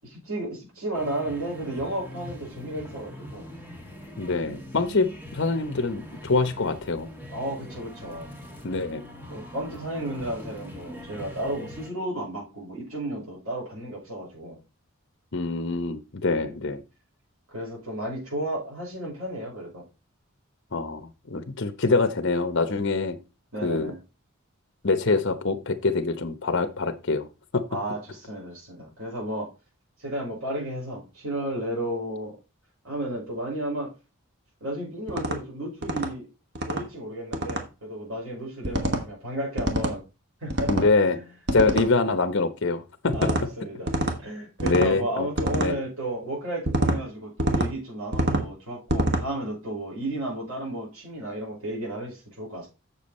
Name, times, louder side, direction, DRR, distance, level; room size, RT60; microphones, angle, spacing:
voice 1, 0.0-3.5 7.3-8.3 9.3-14.6 16.4-16.6 17.5-19.8 23.5-24.0 27.7-29.5 30.0-32.4 32.8-33.9 34.6-36.3 36.7-40.0 40.4-40.7 41.0-41.2 41.6-41.8 43.1-43.9 44.2-52.7, right 1 dB, 75° right, 5.7 m, -33 dB
sound 1, 0.9-11.9, left 1 dB, 10° right, 2.0 m, -42 dB
voice 2, 4.2-7.1 8.6-9.0 15.3-16.8 20.7-23.2 23.6-23.9 24.8-27.3 27.5-27.6 40.7-41.2 41.5-43.3 44.6-45.3 45.6-45.8, left 3 dB, 55° left, 0.9 m, -25 dB
sound 2, 35.1-35.4 35.8-36.1 36.6-36.8 37.3-37.6 38.6-39.0 39.6-40.0 40.5-40.9 41.5-41.9 43.1-43.4 43.9-44.2 44.6-44.9 45.4-45.7 46.7-47.0 47.4-47.7 48.1-48.5 48.9-49.2, right 1 dB, 50° right, 1.3 m, -26 dB
7.1 x 7.1 x 4.2 m
head